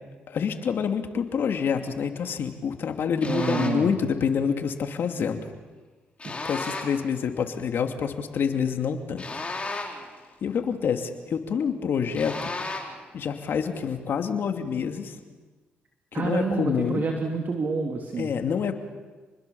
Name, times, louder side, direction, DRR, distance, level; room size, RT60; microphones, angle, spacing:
voice 1, 0.3-5.5 6.4-9.2 9.7-9.8 10.4-12.5 13.1-15.2 16.1-17.0 18.2-18.7, left 7 dB, 65° left, 6 dB, 2.6 m, -27 dB
sound 1, 3.2-3.9 6.2-7.1 9.2-10.2 12.2-13.0, left 3 dB, 30° left, 4.7 m, -34 dB
voice 2, 3.2-4.0 6.2-6.7 16.1-18.3, right 4 dB, 50° right, 1 dB, 2.9 m, -28 dB
28.5 x 21.0 x 7.1 m, 1.3 s
supercardioid pair, 60°, 4 cm